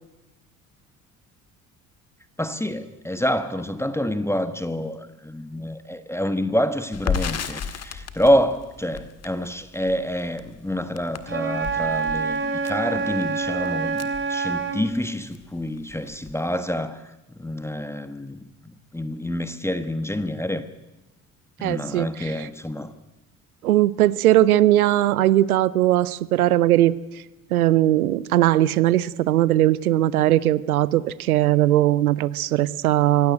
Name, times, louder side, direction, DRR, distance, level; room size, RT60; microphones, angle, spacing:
voice 1, 2.4-20.6 21.6-22.9, equal, 5° left, 1.3 m, -27 dB
Crackle, 6.9-15.0 15.3-15.5 15.8-16.5, left 6 dB, 35° left, 1.9 m, -33 dB
Wind instrument woodwind instrument, 11.3-14.8, right 5 dB, 25° right, 3.6 m, -26 dB
voice 2, 21.6-22.3 23.6-26.9 27.5-33.3, right 14 dB, 80° right, 0.7 m, -19 dB
24.0 x 16.5 x 9.3 m
figure-of-eight pair, 55°, 43 cm